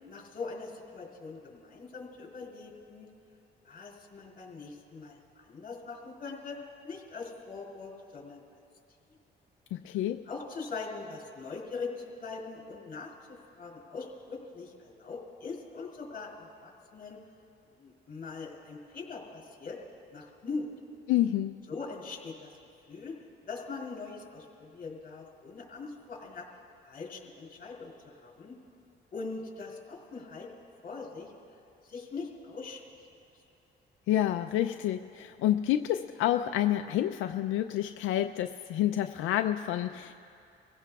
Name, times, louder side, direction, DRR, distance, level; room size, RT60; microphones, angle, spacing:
voice 1, 0.1-3.1 3.6-6.6 6.8-8.4 9.1-9.2 10.3-17.2 17.8-19.8 20.1-20.7 21.7-22.5 22.9-23.1 23.4-26.5 26.8-28.6 29.1-30.5 30.8-31.3 31.8-32.8, left 4 dB, 45° left, -1 dB, 3.6 m, -42 dB
voice 2, 9.7-10.2 21.1-21.6 34.1-40.1, left 12 dB, 85° left, 7 dB, 0.4 m, -28 dB
26.0 x 16.5 x 2.4 m, 2.4 s
cardioid pair, 90°, 20 cm